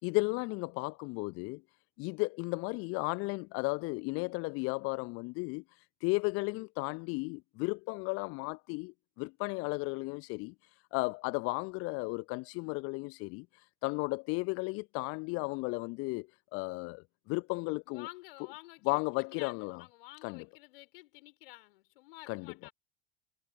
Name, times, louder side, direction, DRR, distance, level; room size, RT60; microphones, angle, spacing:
voice 1, 0.0-1.6 2.0-18.1 18.8-19.8 20.2-20.4 22.3-22.7, left 28 dB, 45° left, 0.8 m, -34 dB
voice 2, 17.9-22.7, left 20 dB, 60° left, 4.6 m, -51 dB
figure-of-eight pair, 75°, 32 cm